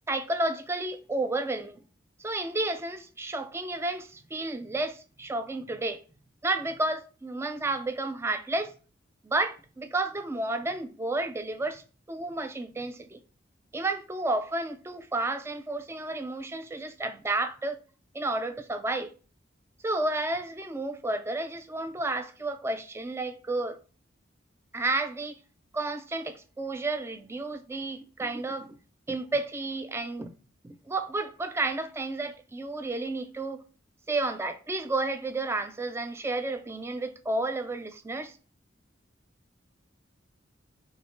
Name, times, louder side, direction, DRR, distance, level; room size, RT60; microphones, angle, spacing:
voice 1, 0.1-1.8 2.2-6.0 6.4-8.7 9.2-11.8 12.1-13.2 13.7-17.8 18.1-19.1 19.8-23.8 24.7-25.4 25.7-28.8 29.1-30.3 30.6-33.6 34.1-38.3, right 2 dB, 15° right, 0.3 m, -31 dB
4.0 x 2.9 x 3.7 m
head